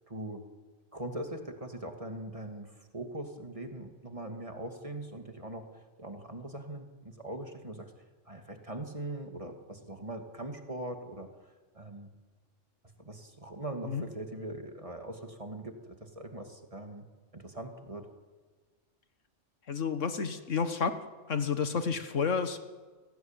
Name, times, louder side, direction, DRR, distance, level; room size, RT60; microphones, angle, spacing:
voice 1, 0.1-0.4 0.9-5.7 6.0-7.9 8.2-11.3 11.7-12.1 13.0-17.1 17.3-18.1, right 1 dB, 25° right, 4 dB, 2.5 m, -41 dB
voice 2, 19.7-20.9 21.3-22.6, left 6 dB, 85° left, 9 dB, 1.8 m, -30 dB
30.0 x 17.5 x 9.0 m, 1.4 s
omnidirectional pair, 1.3 m